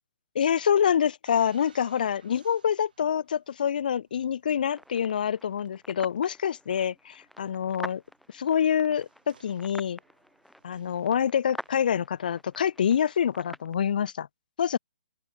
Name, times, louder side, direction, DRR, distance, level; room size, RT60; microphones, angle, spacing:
voice 1, 0.3-8.0 8.3-10.0 10.6-14.3 14.6-14.8, left 8 dB, 65° left, 0.3 m, -26 dB
sound 1, 1.2-13.9, right 7 dB, 65° right, 6.0 m, -63 dB
sound 2, 4.7-13.7, left 1 dB, ahead, 1.0 m, -47 dB
open air
hypercardioid pair, 130°, 5 cm